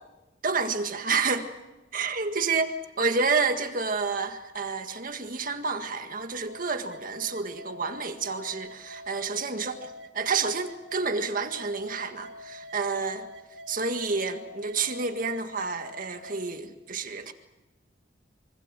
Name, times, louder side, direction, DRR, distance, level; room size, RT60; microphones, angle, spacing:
voice 1, 0.4-1.5 1.9-2.7 3.0-9.7 10.1-13.3 13.7-17.3, right 4 dB, 45° right, 7 dB, 1.8 m, -29 dB
sound 1, 6.5-16.5, left 2 dB, 75° right, 1.8 m, -46 dB
25.0 x 25.0 x 7.6 m, 1.1 s
head